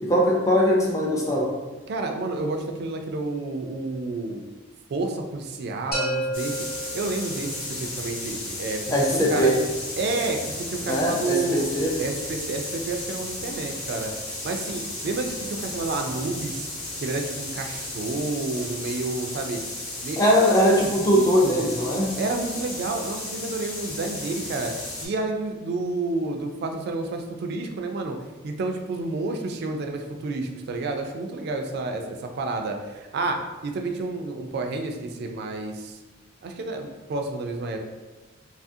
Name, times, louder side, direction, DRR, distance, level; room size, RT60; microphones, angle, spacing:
voice 1, 0.0-1.5 8.9-9.6 10.8-11.9 20.2-22.1, equal, 15° left, -2 dB, 0.4 m, -21 dB
voice 2, 1.9-4.4 4.9-6.6 6.9-9.5 10.0-11.7 12.0-14.1 14.4-16.7 17.0-19.6 20.0-20.5 21.0-21.7 22.2-24.7 25.0-28.2 28.4-36.0 36.4-37.8, right 3 dB, 55° right, 4 dB, 0.3 m, -30 dB
sound 1, 5.9-7.8, right 1 dB, 50° left, 0.7 m, -31 dB
sound 2, 6.3-25.1, left 1 dB, 85° left, 1.0 m, -34 dB
2.7 x 2.4 x 2.6 m, 1.2 s
head